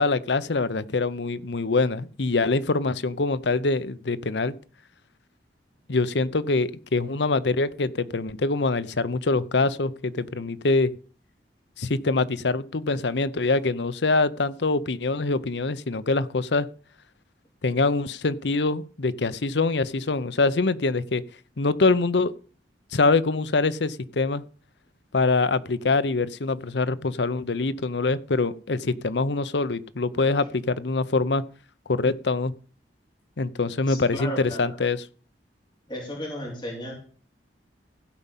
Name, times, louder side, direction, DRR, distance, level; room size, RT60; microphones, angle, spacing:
voice 1, 0.0-4.5 5.9-10.9 11.8-16.7 17.6-21.2 21.6-22.3 22.9-24.4 25.1-31.4 31.9-32.5 33.4-35.0, left 3 dB, 75° left, 0.8 m, -24 dB
voice 2, 33.9-34.7 35.9-36.9, equal, 25° left, 4.4 m, -34 dB
16.0 x 5.5 x 7.3 m
head